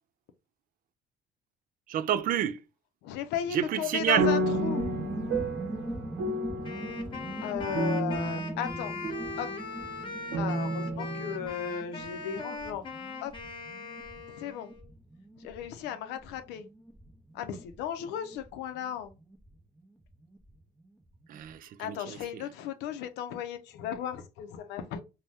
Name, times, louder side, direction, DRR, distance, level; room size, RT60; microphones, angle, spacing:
voice 1, 1.9-2.6 3.5-4.3 21.3-22.4, right 11 dB, 55° right, 0.4 m, -29 dB
voice 2, 3.0-4.9 7.4-9.0 9.4-9.5 10.4-12.9 13.2-13.3 14.3-14.7 15.4-16.7 17.3-19.1 21.8-25.0, left 9 dB, 90° left, 0.5 m, -35 dB
sound 1, 3.7-9.7 10.3-11.5, right 2 dB, 75° right, 0.8 m, -32 dB
sound 2, 4.3-20.6 20.8-20.9 21.1-21.5, right 1 dB, 5° right, 0.6 m, -42 dB
Wind instrument woodwind instrument, 6.6-14.8, left 3 dB, 30° left, 0.9 m, -40 dB
2.7 x 2.2 x 3.3 m
cardioid pair, 110°, 17 cm